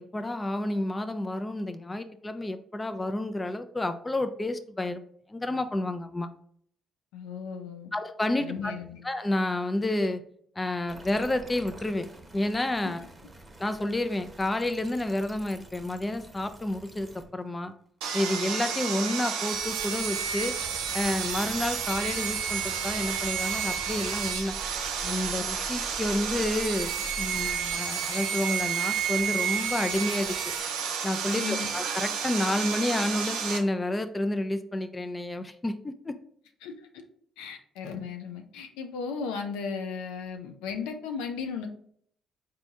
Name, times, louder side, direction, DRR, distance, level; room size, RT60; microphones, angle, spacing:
voice 1, 0.0-5.0 5.3-6.3 7.9-8.7 9.0-10.2 10.6-12.1 12.3-13.0 13.6-17.7 18.1-20.5 20.9-24.6 25.0-30.5 31.0-36.1, left 1 dB, 20° left, 10 dB, 0.4 m, -30 dB
voice 2, 7.1-7.9 8.4-9.0 12.8-12.9 31.4-31.7 36.6-36.7 37.4-41.7, left 5 dB, 85° left, 5 dB, 0.5 m, -35 dB
sound 1, 10.9-17.5 18.5-18.6 19.3-30.6, right 2 dB, 15° right, 0.9 m, -46 dB
Sawing, 18.0-33.6, right 7 dB, 85° right, 0.5 m, -31 dB
4.0 x 2.7 x 3.5 m, 0.62 s
supercardioid pair, 60°, 0 cm